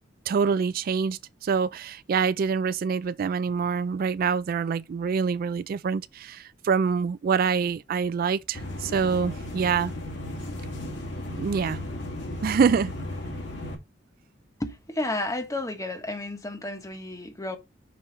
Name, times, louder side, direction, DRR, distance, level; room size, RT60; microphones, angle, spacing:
voice 1, 0.3-9.9 11.4-11.8 12.4-12.9, right 6 dB, 50° right, 0.3 m, -25 dB
sound 1, 8.5-13.7, left 1 dB, 75° left, 2.3 m, -35 dB
voice 2, 14.6-17.6, left 2 dB, 20° left, 1.1 m, -32 dB
6.2 x 4.4 x 4.9 m
head